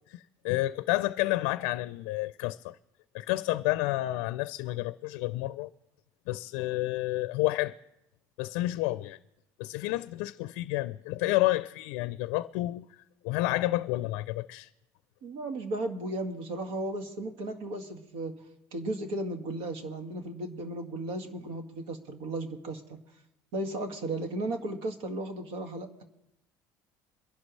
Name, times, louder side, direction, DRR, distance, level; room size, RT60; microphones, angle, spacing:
voice 1, 0.1-2.8 3.1-5.7 6.3-7.8 8.4-9.2 9.6-12.9 13.2-14.7, left 18 dB, 85° left, 0.4 m, -30 dB
voice 2, 15.2-18.4 18.7-23.0 23.5-26.0, right 2 dB, 80° right, 2.0 m, -35 dB
23.5 x 11.5 x 3.2 m
cardioid pair, 110°, 8 cm